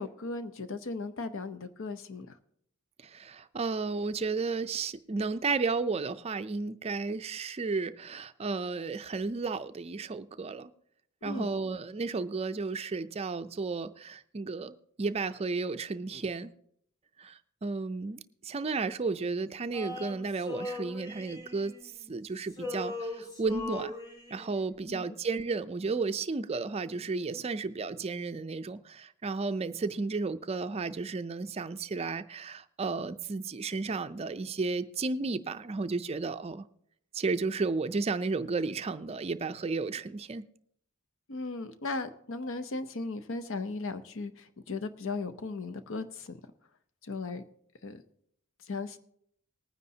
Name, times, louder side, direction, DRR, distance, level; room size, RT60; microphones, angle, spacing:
voice 1, 0.0-2.4 11.2-11.5 24.9-25.1 41.3-46.4 47.0-47.4 47.8-48.0 48.7-49.0, left 3 dB, 65° left, 0.7 m, -37 dB
voice 2, 3.0-10.7 11.2-16.5 17.2-21.7 22.1-23.9 24.3-36.6 37.1-40.4, right 4 dB, 30° right, 0.4 m, -33 dB
Male singing, 19.7-22.2 22.5-24.6, left 2 dB, 20° left, 3.2 m, -39 dB
19.5 x 9.6 x 2.8 m
head